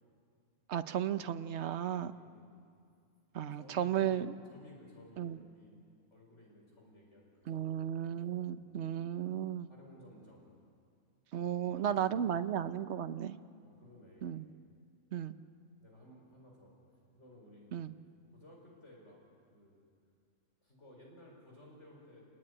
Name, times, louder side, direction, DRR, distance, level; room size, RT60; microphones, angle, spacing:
voice 1, 0.7-2.1 3.3-4.3 5.2-5.4 7.5-9.7 11.3-13.4 14.2-14.5 15.1-15.3 17.7-17.9, right 10 dB, 55° right, 11 dB, 1.1 m, -34 dB
voice 2, 2.0-2.5 3.5-5.8 6.1-7.7 8.6-8.9 9.7-10.5 11.4-12.4 13.6-14.4 15.8-16.7 17.1-17.7 18.3-19.2 19.5-19.8 20.6-22.2, left 1 dB, 55° left, -2 dB, 5.4 m, -57 dB
28.5 x 20.5 x 9.9 m, 2.3 s
omnidirectional pair, 1.5 m